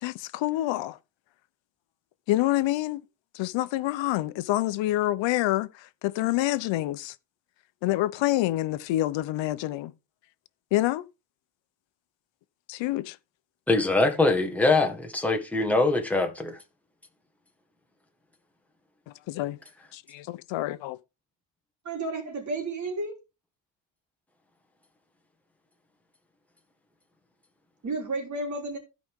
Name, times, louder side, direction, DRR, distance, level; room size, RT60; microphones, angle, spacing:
voice 1, 0.0-1.0 2.3-3.0 3.3-7.1 7.8-9.9 10.7-11.0 12.7-13.2 19.3-19.6 19.9-21.0, left 16 dB, 70° left, 0.9 m, -27 dB
voice 2, 13.7-16.5, left 2 dB, 5° left, 1.8 m, -23 dB
voice 3, 21.8-23.1 27.8-28.8, right 2 dB, 35° right, 3.7 m, -32 dB
15.5 x 5.2 x 3.7 m
cardioid pair, 145°, 47 cm